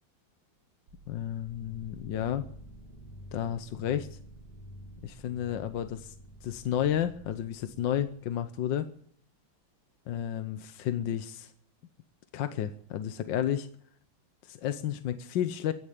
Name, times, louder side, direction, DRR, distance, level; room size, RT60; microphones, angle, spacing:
sound 1, 0.9-8.7, right 1 dB, 60° right, 2.5 m, -50 dB
voice 1, 1.1-2.4 3.3-4.2 5.0-6.1 6.4-8.9 10.1-11.5 12.3-13.7 14.4-15.7, left 10 dB, 75° left, 10 dB, 1.5 m, -32 dB
16.5 x 10.0 x 8.7 m, 0.62 s
omnidirectional pair, 2.1 m